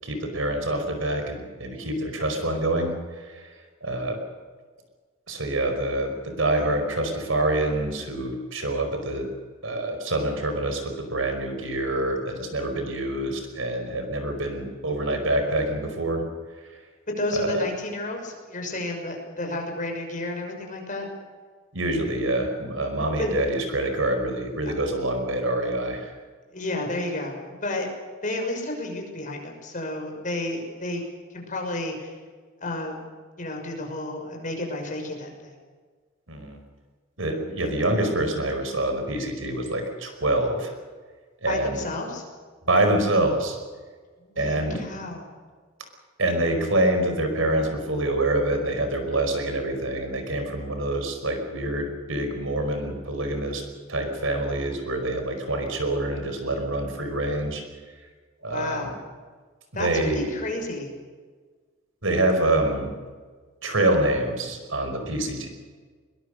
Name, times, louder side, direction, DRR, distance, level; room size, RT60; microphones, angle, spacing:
voice 1, 0.0-3.5 3.8-4.2 5.3-9.3 9.6-16.2 17.3-17.6 21.7-26.1 36.3-36.6 37.2-40.7 41.4-41.8 42.6-43.6 44.4-44.7 46.2-53.6 53.9-57.6 58.4-58.9 59.7-60.3 62.0-62.9 63.6-65.5, right 1 dB, 75° right, 6 dB, 5.1 m, -26 dB
voice 2, 17.2-21.1 23.2-23.4 26.5-27.9 28.2-31.0 31.3-32.2 32.6-33.0 33.4-35.6 41.5-42.2 44.2-45.3 58.4-58.9 59.7-60.9, left 2 dB, 40° left, 2 dB, 6.1 m, -31 dB
22.5 x 22.0 x 6.6 m, 1.5 s
head